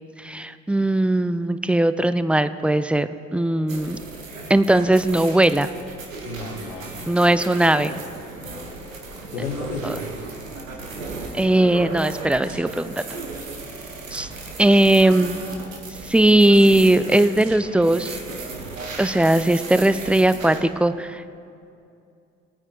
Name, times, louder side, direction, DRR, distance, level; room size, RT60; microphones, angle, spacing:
voice 1, 0.2-4.0 4.5-5.7 7.1-7.9 9.8-9.9 11.3-13.0 14.1-14.3 14.6-15.4 16.1-18.2 19.0-21.4, right 1 dB, 5° right, 12 dB, 0.3 m, -19 dB
sound 1, 3.7-20.6, right 3 dB, 90° right, 1.1 m, -35 dB
voice 2, 6.2-7.2 8.4-8.9 9.3-10.1, left 4 dB, 80° left, 4 dB, 1.1 m, -34 dB
20.0 x 9.0 x 3.8 m, 2.5 s
figure-of-eight pair, 45°, 38 cm